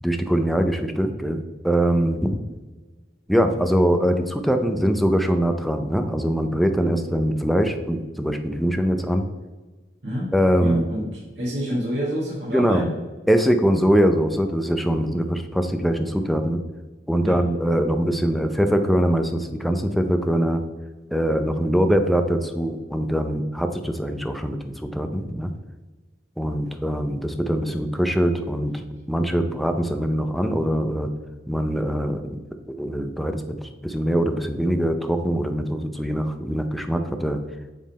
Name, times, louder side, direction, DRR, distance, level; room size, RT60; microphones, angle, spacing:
voice 1, 0.0-2.4 3.3-9.2 10.3-10.9 12.5-12.8 13.3-16.6 17.1-20.6 21.1-25.5 26.4-31.1 31.5-32.4 32.7-33.4 33.8-37.4, equal, ahead, 6 dB, 0.4 m, -22 dB
voice 2, 10.6-11.1 11.4-12.9 17.2-17.4, equal, 70° right, -7 dB, 1.8 m, -28 dB
7.3 x 3.7 x 4.1 m, 1.3 s
head